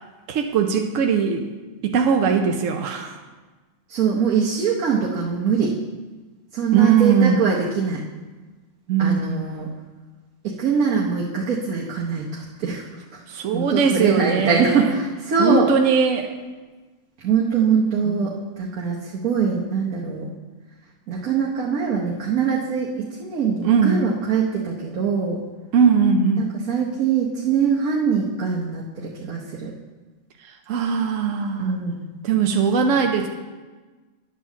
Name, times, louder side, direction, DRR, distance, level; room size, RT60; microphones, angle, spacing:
voice 1, 0.3-1.5 1.8-3.2 6.7-7.4 8.9-9.4 13.3-14.9 15.4-16.3 18.1-18.3 23.6-24.0 25.7-26.5 30.7-31.7 32.2-33.3, right 6 dB, 70° right, 4 dB, 1.0 m, -20 dB
voice 2, 3.9-5.8 6.5-8.0 9.0-9.7 10.4-12.8 13.1-13.2 13.5-15.7 17.2-20.3 21.1-25.4 26.4-29.7 31.6-32.0, right 6 dB, 90° right, -3 dB, 1.4 m, -23 dB
10.5 x 4.6 x 7.0 m, 1.3 s
omnidirectional pair, 1.4 m